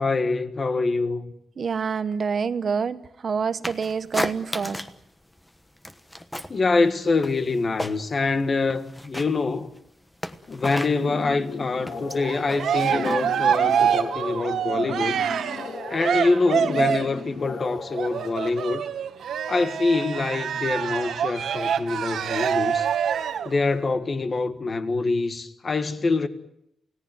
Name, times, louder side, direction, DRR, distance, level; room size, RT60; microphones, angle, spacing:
voice 1, 0.0-1.3 6.5-9.7 10.5-15.2 15.9-18.8 19.5-22.9 23.5-26.3, left 3 dB, 30° left, 1.7 m, -25 dB
voice 2, 1.6-4.8, right 6 dB, 45° right, 1.1 m, -27 dB
sound 1, 3.6-5.0 5.3-6.6 6.9-8.3 8.6-14.0, left 1 dB, 10° left, 1.3 m, -34 dB
sound 2, 10.9-18.3, left 4 dB, 60° left, 5.0 m, -36 dB
Cheering, 12.2-17.2 17.9-23.5, right 8 dB, 75° right, 1.7 m, -26 dB
29.5 x 17.5 x 9.3 m
wide cardioid pair, 155°, 0 cm